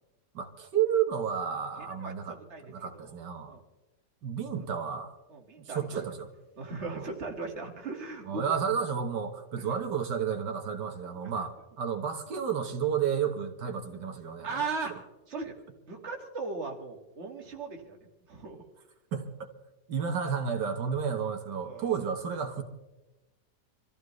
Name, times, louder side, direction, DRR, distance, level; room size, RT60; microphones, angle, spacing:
voice 1, 0.3-2.4 2.7-3.5 4.2-5.2 5.7-6.3 6.9-7.1 8.2-14.6 19.1-19.3 19.9-22.6, right 7 dB, 85° right, 4 dB, 1.9 m, -31 dB
voice 2, 2.0-3.2 3.5-3.6 5.3-6.0 6.6-8.6 9.6-9.7 11.2-11.3 14.4-15.5 15.9-18.0 18.3-18.7 21.6-22.0, right 4 dB, 40° right, 1 dB, 2.2 m, -38 dB
26.0 x 14.5 x 3.2 m, 1.0 s
omnidirectional pair, 1.8 m